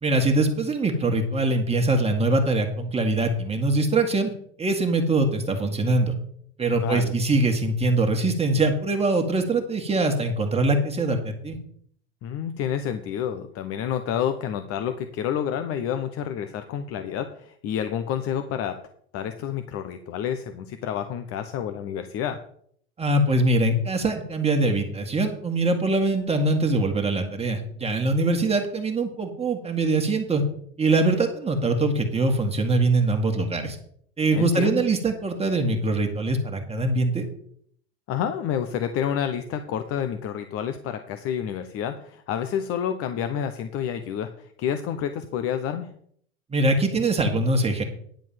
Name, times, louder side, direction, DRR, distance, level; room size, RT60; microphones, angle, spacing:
voice 1, 0.0-4.3 4.6-6.1 6.6-11.6 23.0-30.4 30.8-33.8 34.2-37.2 46.5-47.8, right 2 dB, 20° right, 3 dB, 2.0 m, -23 dB
voice 2, 6.7-7.1 12.2-18.8 19.1-22.4 34.3-34.8 38.1-45.9, left 9 dB, 50° left, 8 dB, 1.0 m, -29 dB
10.5 x 4.6 x 7.5 m, 0.63 s
hypercardioid pair, 85°, 30 cm